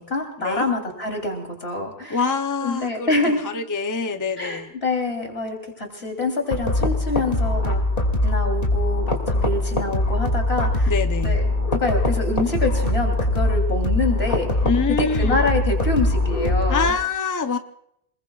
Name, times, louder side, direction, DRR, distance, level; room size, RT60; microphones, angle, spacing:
voice 1, 0.0-2.2 2.6-3.4 4.4-7.8 8.2-10.9 11.2-14.5 15.0-16.9, left 2 dB, 80° left, 2 dB, 3.7 m, -26 dB
voice 2, 2.1-3.1 3.4-4.7 10.9-11.4 14.6-15.4 16.7-17.6, left 5 dB, 20° left, 7 dB, 0.7 m, -25 dB
sound 1, 6.5-16.9, left 2 dB, 65° left, 2.7 m, -22 dB
28.0 x 20.5 x 2.4 m, 0.74 s
omnidirectional pair, 1.0 m